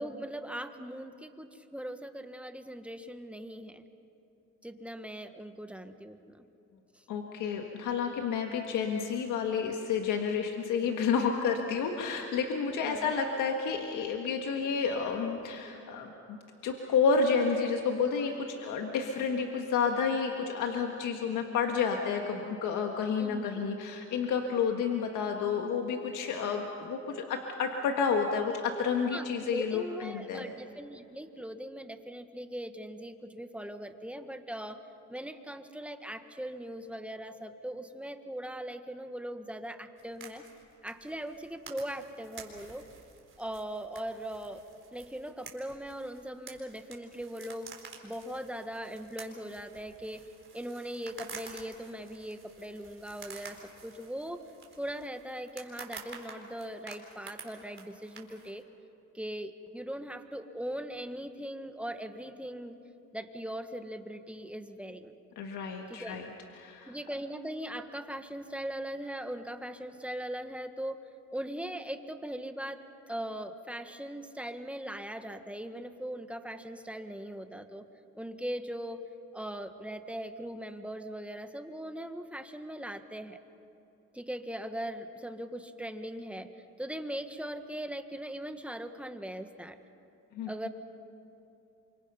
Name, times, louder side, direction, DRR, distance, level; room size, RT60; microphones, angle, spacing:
voice 1, 0.0-3.8 4.6-6.4 12.7-13.1 23.2-23.6 29.1-34.8 35.1-40.4 40.8-42.8 43.4-44.6 44.9-47.7 48.0-50.2 50.5-54.4 54.8-58.6 59.1-62.7 63.1-65.1 65.9-66.2 66.9-71.0 71.3-72.8 73.1-77.8 78.1-79.0 79.3-83.4 84.1-86.5 86.8-89.8 90.5-90.7, right 1 dB, 5° right, 8 dB, 1.4 m, -40 dB
voice 2, 7.1-16.4 16.6-30.5 65.4-66.3 66.5-67.0 90.3-90.7, left 5 dB, 90° left, 3 dB, 1.6 m, -30 dB
sound 1, 40.0-58.6, right 5 dB, 40° right, 4.0 m, -50 dB
28.0 x 25.0 x 5.6 m, 2.9 s
cardioid pair, 90°, 30 cm